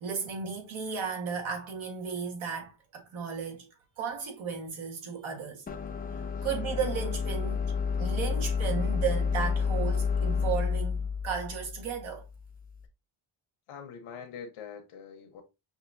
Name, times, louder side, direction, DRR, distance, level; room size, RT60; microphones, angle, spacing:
voice 1, 0.0-3.7 4.0-5.6 6.4-12.2, right 6 dB, 70° right, 1.6 m, -34 dB
sound 1, 5.7-12.7, left 5 dB, 20° left, 0.5 m, -30 dB
voice 2, 13.7-15.4, left 6 dB, 85° left, 1.1 m, -44 dB
5.8 x 2.7 x 2.6 m
cardioid pair, 120°, 49 cm